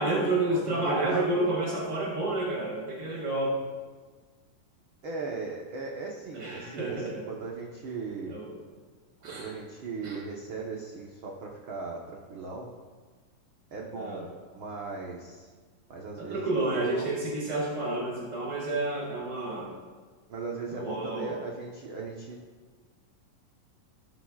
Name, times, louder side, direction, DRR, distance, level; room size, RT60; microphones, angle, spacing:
voice 1, 0.0-3.6 6.3-7.3 8.3-8.5 9.2-9.5 10.0-10.2 14.0-14.3 16.2-19.7 20.7-21.4, right 2 dB, 30° right, -5 dB, 5.1 m, -30 dB
voice 2, 0.7-1.6 5.0-8.3 9.2-12.7 13.7-15.5 15.9-17.1 20.3-22.4, right 4 dB, 65° right, -1 dB, 1.2 m, -38 dB
18.5 x 13.5 x 2.4 m, 1.4 s
omnidirectional pair, 3.9 m